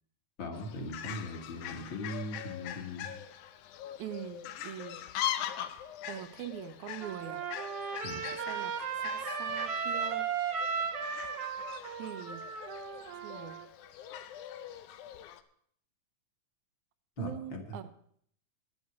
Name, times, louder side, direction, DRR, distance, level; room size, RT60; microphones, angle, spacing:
voice 1, 0.4-3.2 8.0-8.2 17.2-17.8, left 1 dB, 45° left, 3 dB, 2.2 m, -39 dB
Fowl, 0.5-15.4, left 11 dB, 80° left, 2.2 m, -42 dB
voice 2, 4.0-5.0 6.1-7.4 8.1-10.3 12.0-12.4 13.2-13.6 17.2-17.8, right 11 dB, 75° right, 10 dB, 2.2 m, -43 dB
Trumpet, 7.0-13.7, right 6 dB, 60° right, 1.9 m, -36 dB
10.5 x 8.0 x 8.3 m, 0.63 s
omnidirectional pair, 3.5 m